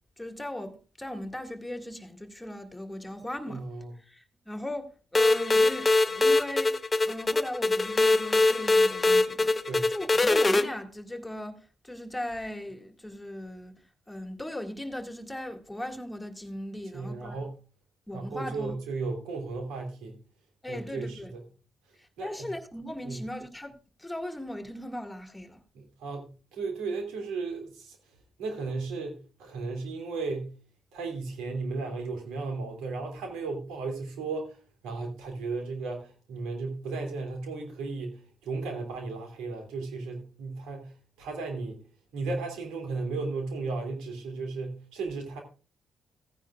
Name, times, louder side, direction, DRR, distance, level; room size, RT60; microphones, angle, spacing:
voice 1, 0.2-3.7 3.9-9.6 9.9-13.8 14.1-17.4 18.1-18.7 20.6-21.3 22.0-25.6, left 1 dB, 10° left, 2.1 m, -38 dB
voice 2, 3.5-3.9 9.6-9.9 16.9-17.5 18.1-20.2 20.7-21.4 22.2-22.5 23.0-23.2 25.7-28.0 28.4-30.5 30.9-34.6 34.8-40.9 41.2-41.8 42.1-45.4, right 3 dB, 90° right, 2.9 m, -35 dB
sound 1, 5.1-10.6, left 2 dB, 30° left, 1.1 m, -23 dB
16.0 x 9.8 x 2.4 m
supercardioid pair, 60°, 0 cm